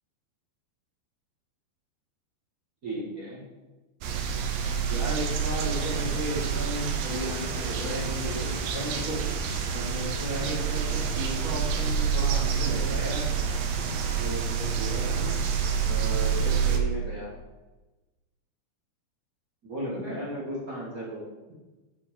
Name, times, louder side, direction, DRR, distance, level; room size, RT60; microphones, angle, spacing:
voice 1, 2.8-3.4 4.9-9.2 9.7-13.2 14.2-15.3 15.8-17.3 19.7-21.2, equal, 35° right, -5 dB, 1.4 m, -35 dB
sound 1, 4.0-16.8, right 6 dB, 85° right, 2.0 m, -28 dB
8.7 x 6.4 x 5.6 m, 1.2 s
omnidirectional pair, 5.4 m